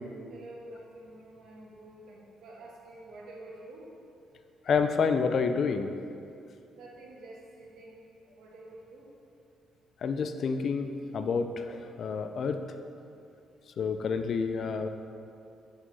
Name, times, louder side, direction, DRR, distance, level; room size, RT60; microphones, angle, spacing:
voice 1, 0.3-3.9 6.7-8.0 8.3-9.1, right 2 dB, 75° right, -3 dB, 1.7 m, -48 dB
voice 2, 4.7-5.9 10.0-12.6 13.8-14.9, left 5 dB, 60° left, 8 dB, 0.5 m, -29 dB
6.6 x 6.2 x 5.4 m, 2.6 s
cardioid pair, 90°, 0 cm